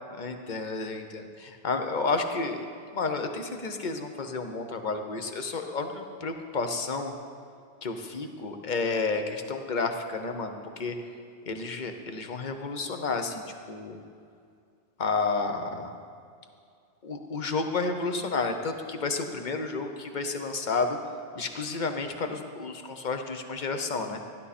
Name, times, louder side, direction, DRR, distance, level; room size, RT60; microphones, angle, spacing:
voice 1, 0.2-2.7 2.9-7.1 7.8-10.9 11.5-14.0 15.0-15.9 17.0-21.0 21.4-24.2, left 4 dB, 45° left, 6 dB, 1.0 m, -31 dB
15.5 x 11.0 x 4.2 m, 2.4 s
omnidirectional pair, 1.2 m